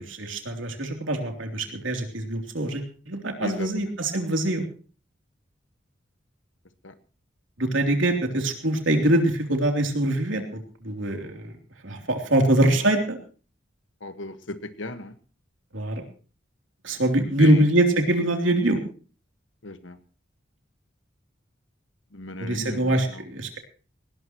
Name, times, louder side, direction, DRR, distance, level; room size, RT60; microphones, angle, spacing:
voice 1, 0.0-4.6 7.6-11.4 11.8-13.2 15.7-16.0 16.8-18.8 22.4-23.6, right 1 dB, 85° right, 4 dB, 3.2 m, -23 dB
voice 2, 3.4-3.9 6.8-6.9 14.0-15.1 17.2-17.6 19.6-20.0 22.1-23.2, left 2 dB, 85° left, 10 dB, 1.5 m, -36 dB
19.5 x 19.0 x 3.0 m, 0.38 s
head